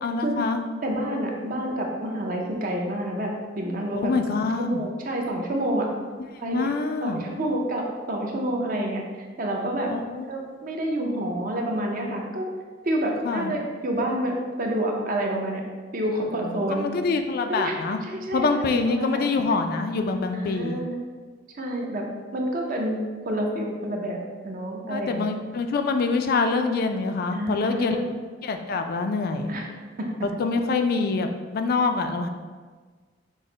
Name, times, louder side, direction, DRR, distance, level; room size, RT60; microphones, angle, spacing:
voice 1, 0.0-0.6 3.9-4.8 6.3-7.3 9.9-10.3 13.2-13.5 16.4-18.0 18.3-20.8 24.9-28.0 28.4-29.5 30.4-32.3, left 4 dB, 50° left, 6 dB, 0.3 m, -25 dB
voice 2, 0.8-4.1 4.6-5.9 6.4-6.7 7.0-9.0 9.4-9.9 10.3-12.5 12.9-15.6 15.9-16.9 17.5-17.8 18.1-19.3 20.3-21.0 21.6-22.1 22.3-23.0 23.3-25.3 27.3-28.2 29.5-29.7 30.0-30.1, right 1 dB, 45° right, 0 dB, 0.6 m, -28 dB
6.2 x 2.1 x 3.8 m, 1.5 s
head